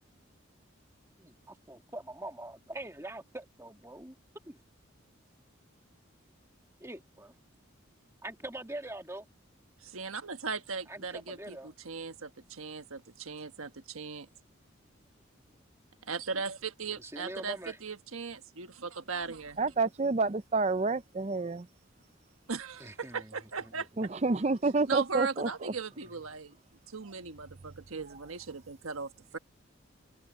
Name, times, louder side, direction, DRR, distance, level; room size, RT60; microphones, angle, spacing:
voice 1, 1.2-4.2 4.5-4.6 6.8-7.3 8.2-9.3 10.9-11.7 17.0-17.8 22.8-23.7 25.9-26.1, right 1 dB, 15° right, 2.0 m, -43 dB
voice 2, 9.8-14.3 16.1-19.6 22.5-23.9 24.9-26.6 26.9-29.4, right 4 dB, 90° right, 1.4 m, -38 dB
voice 3, 19.6-21.7 24.0-25.7, right 3 dB, 30° right, 0.5 m, -29 dB
head